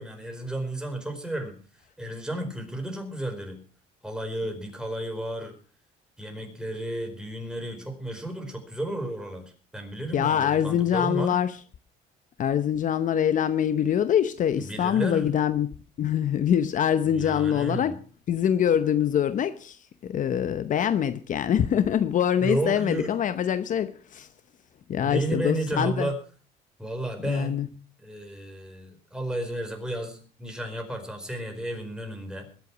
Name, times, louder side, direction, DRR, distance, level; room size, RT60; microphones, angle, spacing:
voice 1, 0.0-1.5 2.0-3.6 4.0-5.6 6.2-11.4 14.5-15.3 17.1-17.9 22.4-23.2 25.0-26.2 26.8-27.6 28.0-32.5, right 1 dB, 5° right, 4.8 m, -32 dB
voice 2, 10.1-11.5 12.4-15.7 16.0-18.0 18.3-24.3 24.9-26.1 27.2-27.7, left 9 dB, 50° left, 0.9 m, -24 dB
21.5 x 8.2 x 6.1 m
cardioid pair, 110°, 17 cm